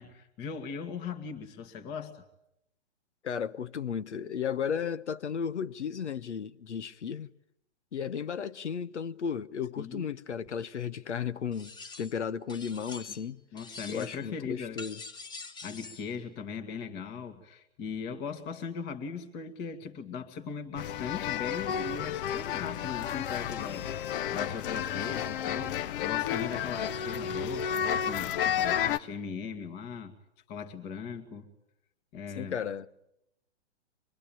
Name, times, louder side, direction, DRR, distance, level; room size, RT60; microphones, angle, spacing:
voice 1, 0.0-2.2 9.8-10.1 13.1-13.2 13.5-14.8 15.6-23.9 24.3-30.1 30.5-31.5 32.1-32.6, left 6 dB, 30° left, 2.1 m, -39 dB
voice 2, 3.2-7.3 7.9-13.4 13.9-15.0 32.3-32.9, left 7 dB, 90° left, 1.1 m, -34 dB
sound 1, 11.5-12.2 12.5-13.3 13.6-14.3 14.8-16.1, left 4 dB, 15° left, 1.2 m, -45 dB
sound 2, 20.8-29.0, left 9 dB, 50° left, 0.9 m, -31 dB
25.0 x 21.5 x 8.9 m
hypercardioid pair, 135°, 34 cm